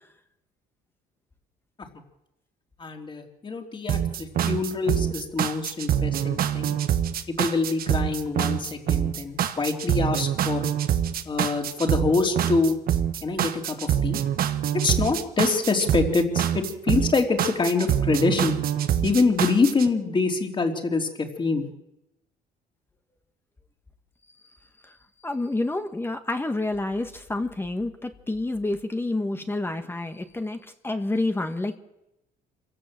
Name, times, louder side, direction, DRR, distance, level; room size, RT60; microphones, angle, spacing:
voice 1, 2.8-6.7 7.3-10.7 11.3-12.8 13.2-14.2 14.8-18.6 19.0-21.7, left 4 dB, 30° left, 3 dB, 3.4 m, -25 dB
sound 1, 3.9-19.9, right 10 dB, 60° right, 1.4 m, -25 dB
voice 2, 25.2-31.8, left 2 dB, 15° left, 7 dB, 1.6 m, -29 dB
26.0 x 16.5 x 7.7 m, 0.90 s
cardioid pair, 110°, 17 cm